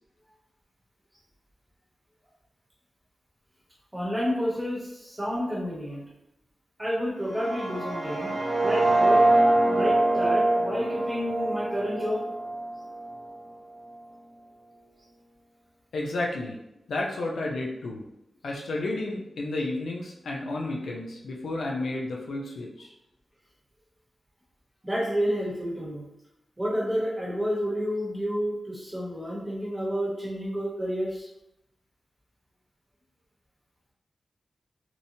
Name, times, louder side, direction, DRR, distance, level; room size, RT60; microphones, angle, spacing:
voice 1, 3.9-6.0 6.8-8.3 8.6-9.3 9.6-12.2 24.8-26.1 26.6-31.3, equal, 10° right, -5 dB, 0.9 m, -30 dB
sound 1, 7.2-13.2, right 2 dB, 55° right, 0.6 m, -24 dB
voice 2, 15.9-16.6 16.9-18.0 18.4-22.9, left 2 dB, 85° left, -1 dB, 0.4 m, -31 dB
2.9 x 2.0 x 2.6 m, 0.84 s
wide cardioid pair, 110°, 0 cm